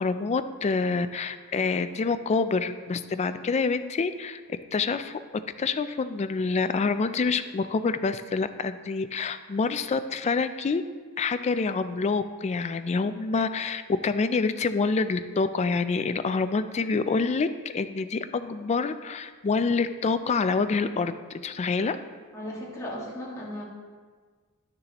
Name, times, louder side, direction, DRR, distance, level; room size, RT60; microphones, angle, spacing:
voice 1, 0.0-4.4 4.7-5.2 5.6-10.8 11.2-22.0, left 4 dB, 30° left, 11 dB, 0.3 m, -27 dB
voice 2, 22.3-23.6, left 1 dB, 15° left, -6 dB, 1.7 m, -36 dB
11.0 x 6.8 x 2.9 m, 1.5 s
head